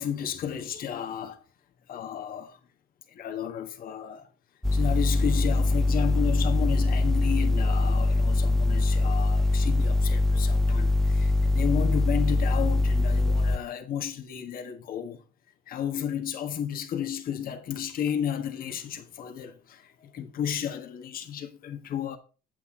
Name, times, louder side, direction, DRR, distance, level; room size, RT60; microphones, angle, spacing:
voice 1, 0.0-1.4 1.9-2.6 3.1-4.3 4.7-15.2 15.7-22.2, left 9 dB, 60° left, 1.5 m, -33 dB
sound 1, 4.6-13.6, left 2 dB, 5° left, 0.4 m, -23 dB
8.3 x 8.1 x 3.8 m
cardioid pair, 110°, 17 cm